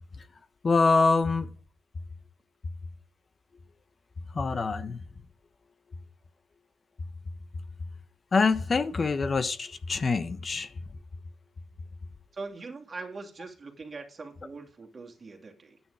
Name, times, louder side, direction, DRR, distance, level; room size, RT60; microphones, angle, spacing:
voice 1, 0.6-1.5 4.3-5.0 8.3-10.7, left 4 dB, 35° left, 1.0 m, -25 dB
voice 2, 12.3-15.8, right 3 dB, 35° right, 2.6 m, -42 dB
9.7 x 9.4 x 5.0 m
cardioid pair, 90°, 0 cm